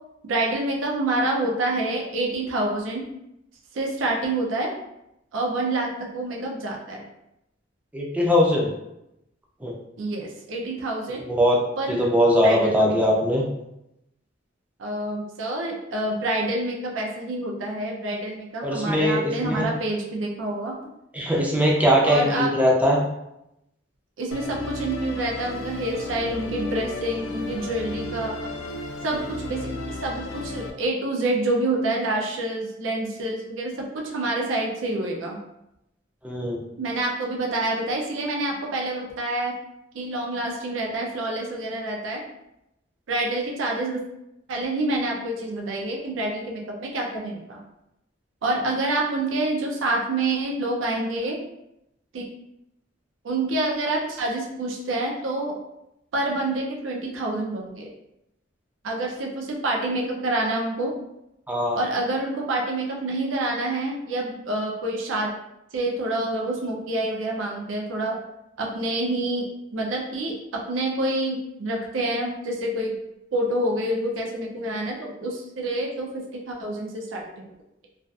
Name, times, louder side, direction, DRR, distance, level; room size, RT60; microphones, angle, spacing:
voice 1, 0.3-3.0 3.7-4.7 5.3-7.0 10.0-11.3 11.8-12.0 12.4-12.9 14.8-20.8 22.0-22.5 24.2-28.5 29.0-35.4 36.8-39.5 39.9-42.2 43.1-44.0 44.5-47.6 48.4-51.4 52.1-52.3 53.2-55.6 56.1-57.9 58.8-60.9 61.7-65.3 65.7-68.2 68.6-73.0 73.3-77.5, right 2 dB, 80° right, 0 dB, 0.5 m, -27 dB
voice 2, 7.9-8.7 9.6-9.7 11.3-11.6 11.9-13.5 18.6-19.7 21.1-23.0 36.2-36.6 61.5-61.8, equal, 10° right, -2 dB, 0.4 m, -21 dB
Musical instrument, 24.3-30.7, left 3 dB, 80° left, 0.3 m, -34 dB
2.5 x 2.4 x 2.3 m, 0.86 s
head